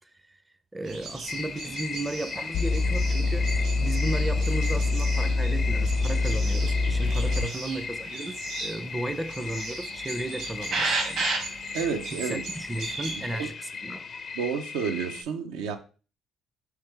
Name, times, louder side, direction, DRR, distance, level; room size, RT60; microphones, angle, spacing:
voice 1, 0.7-3.5 3.8-11.3 12.1-14.1, right 2 dB, 15° right, 0.4 m, -35 dB
sound 1, 0.8-13.5, right 3 dB, 70° right, 1.3 m, -36 dB
sound 2, 1.3-15.2, left 5 dB, 50° left, 0.5 m, -38 dB
sound 3, 2.5-7.4, left 3 dB, 80° left, 0.8 m, -25 dB
voice 2, 11.7-12.4 13.3-13.5 14.3-15.8, right 6 dB, 90° right, 0.4 m, -30 dB
3.6 x 3.2 x 3.2 m
supercardioid pair, 65°, 0 cm